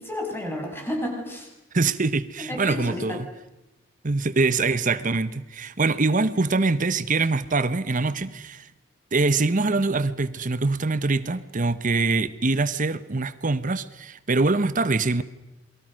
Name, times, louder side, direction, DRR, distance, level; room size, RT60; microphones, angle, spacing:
voice 1, 0.0-1.5 2.4-3.2, left 1 dB, 10° left, 1 dB, 6.6 m, -31 dB
voice 2, 1.7-3.3 4.0-8.7 9.1-15.2, right 3 dB, 45° right, 15 dB, 1.0 m, -24 dB
28.5 x 23.0 x 6.4 m, 0.97 s
head